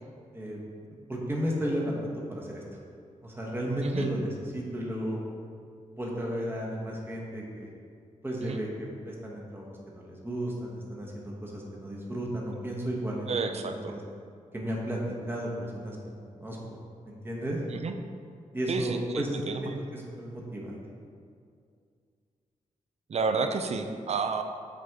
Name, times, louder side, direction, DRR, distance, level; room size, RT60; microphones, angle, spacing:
voice 1, 1.1-2.6 3.2-5.2 5.9-7.7 8.2-13.4 13.7-14.0 14.5-15.0 15.3-16.0 16.4-16.6 17.0-17.6 18.5-19.4 19.6-20.8, right 1 dB, 15° right, -3 dB, 1.1 m, -33 dB
voice 2, 13.3-13.9 17.7-17.9 18.7-19.8 23.1-24.4, right 4 dB, 50° right, 7 dB, 0.5 m, -31 dB
6.2 x 4.2 x 3.6 m, 2.3 s
cardioid pair, 70°, 14 cm